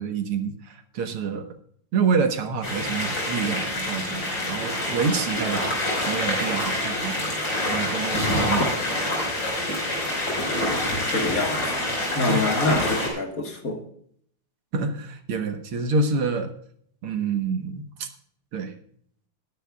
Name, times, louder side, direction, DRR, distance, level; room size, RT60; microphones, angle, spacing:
voice 1, 0.0-1.5 1.9-5.8 6.1-7.3 7.7-8.7 12.3-12.4 14.7-16.5 17.0-18.1 18.5-18.7, right 5 dB, 85° right, 6 dB, 2.3 m, -27 dB
sound 1, 2.6-13.1, left 1 dB, 60° left, 5.8 m, -26 dB
voice 2, 11.1-11.7 12.2-13.8, left 3 dB, 45° left, 3 dB, 1.9 m, -26 dB
20.0 x 11.0 x 2.4 m, 0.62 s
omnidirectional pair, 2.3 m